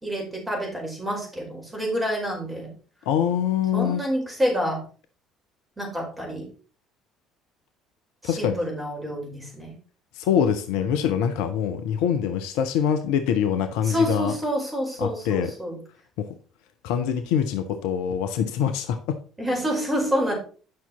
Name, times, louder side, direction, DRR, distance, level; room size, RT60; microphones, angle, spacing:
voice 1, 0.0-2.7 3.7-4.8 5.8-6.5 8.2-9.7 13.8-15.8 19.4-20.3, equal, 15° right, 4.7 m, -28 dB
voice 2, 3.1-4.0 8.2-8.6 10.2-14.4 15.0-15.5 16.2-16.4 16.8-19.2, left 8 dB, 65° left, 0.7 m, -24 dB
9.6 x 5.9 x 4.0 m
figure-of-eight pair, 55°, 0 cm